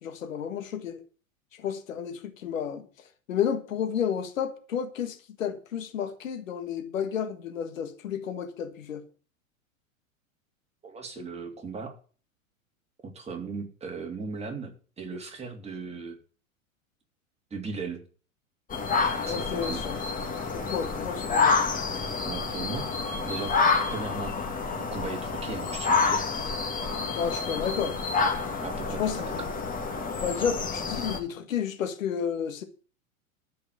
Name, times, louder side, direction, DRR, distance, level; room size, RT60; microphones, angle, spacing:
voice 1, 0.0-1.0 1.5-9.0 19.2-20.0 20.5-21.6 27.2-28.0 29.0-29.5 30.2-32.6, left 8 dB, 70° left, 1.7 m, -31 dB
voice 2, 10.8-12.0 13.0-16.2 17.5-18.0 19.3-19.9 22.2-22.9 23.2-23.5 23.9-24.3 24.7-26.3 28.6-29.5, right 4 dB, 15° right, 3.0 m, -37 dB
sound 1, 18.7-31.2, left 4 dB, 20° left, 2.4 m, -28 dB
13.5 x 5.3 x 8.3 m
figure-of-eight pair, 95°, 41 cm